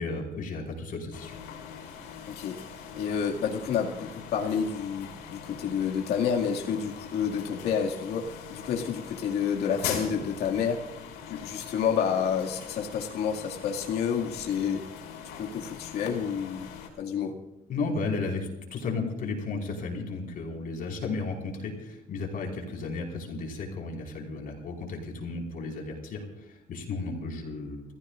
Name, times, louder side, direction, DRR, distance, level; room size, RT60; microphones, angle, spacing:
voice 1, 0.0-1.4 17.7-27.8, left 3 dB, 55° left, 0 dB, 5.0 m, -34 dB
sound 1, 1.1-16.9, left 7 dB, 90° left, 4.8 m, -42 dB
voice 2, 2.3-2.6 3.0-10.8 11.3-14.9 15.4-16.7 17.0-17.4, left 7 dB, 70° left, -1 dB, 2.2 m, -29 dB
29.0 x 15.5 x 2.5 m, 0.97 s
cardioid pair, 110°, 17 cm